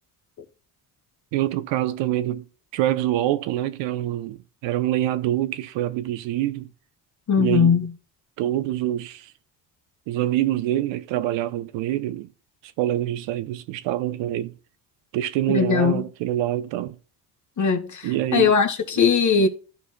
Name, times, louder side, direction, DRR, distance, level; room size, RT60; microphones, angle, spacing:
voice 1, 1.3-2.4 2.7-4.4 4.6-6.7 7.4-7.8 8.4-9.3 10.1-12.3 12.8-14.5 15.1-17.0 18.0-18.5, right 13 dB, 75° right, 0.8 m, -25 dB
voice 2, 7.3-7.9 15.5-16.0 17.6-19.5, left 6 dB, 40° left, 1.5 m, -20 dB
14.0 x 4.8 x 2.2 m
supercardioid pair, 70°, 45 cm